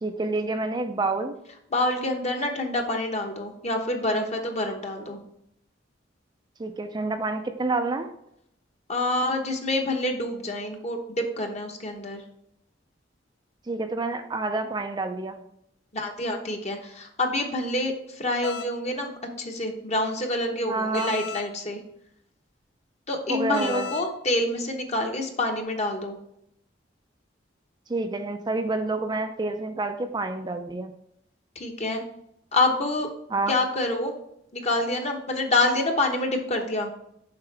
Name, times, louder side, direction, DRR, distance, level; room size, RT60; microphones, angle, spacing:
voice 1, 0.0-1.4 6.6-8.1 13.7-15.4 20.7-21.1 23.3-23.9 27.9-30.9 33.3-33.5, right 3 dB, 25° right, 6 dB, 0.4 m, -28 dB
voice 2, 1.7-5.2 8.9-12.2 15.9-19.1 19.4-21.8 23.1-26.2 31.6-32.0 32.5-33.1 33.5-34.1 34.5-36.9, left 2 dB, 35° left, 3 dB, 1.1 m, -27 dB
sound 1, 18.4-18.7 20.9-21.5 23.5-24.1, left 6 dB, 60° left, 0.7 m, -34 dB
7.1 x 5.7 x 3.4 m, 0.75 s
head